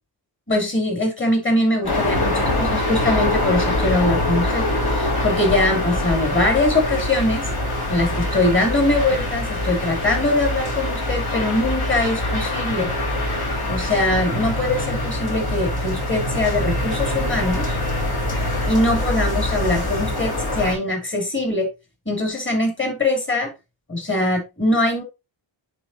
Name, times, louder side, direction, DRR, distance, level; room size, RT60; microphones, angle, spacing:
voice 1, 0.5-7.5 7.9-12.9 13.7-17.8 18.7-21.7 22.1-23.5 23.9-25.0, left 2 dB, 25° left, 2 dB, 3.0 m, -22 dB
sound 1, 1.8-20.7, left 1 dB, 50° left, 3.0 m, -24 dB
9.8 x 4.0 x 2.8 m, 0.24 s
wide cardioid pair, 90°, 48 cm